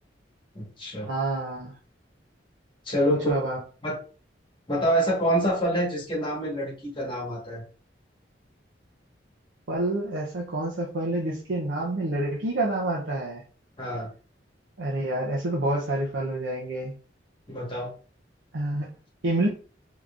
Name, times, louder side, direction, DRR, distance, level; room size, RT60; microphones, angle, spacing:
voice 1, 0.5-1.1 2.8-3.3 3.8-4.0 4.7-7.6 13.8-14.1 17.5-17.9, equal, 25° left, -4 dB, 1.3 m, -26 dB
voice 2, 1.1-1.7 3.1-3.6 9.7-13.4 14.8-16.9 18.5-18.9 19.2-19.5, right 1 dB, 80° right, -4 dB, 0.7 m, -28 dB
3.7 x 3.0 x 2.4 m, 0.39 s
head